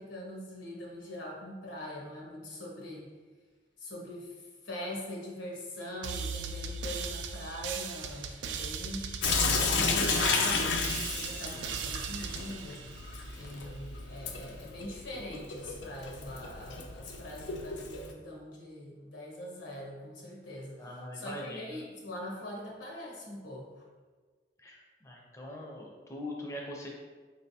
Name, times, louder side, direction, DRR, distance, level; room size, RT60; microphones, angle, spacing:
voice 1, 0.0-3.1 3.8-9.1 9.5-12.9 13.4-23.8, left 1 dB, 90° left, -2 dB, 1.1 m, -42 dB
sound 1, 6.0-13.5, right 6 dB, 80° right, 0.3 m, -38 dB
Sink (filling or washing) / Drip, 9.2-18.1, left 4 dB, 75° left, 0.4 m, -33 dB
voice 2, 20.8-21.7 24.6-26.9, left 1 dB, 15° left, -1 dB, 0.4 m, -42 dB
4.4 x 3.3 x 2.7 m, 1.4 s
head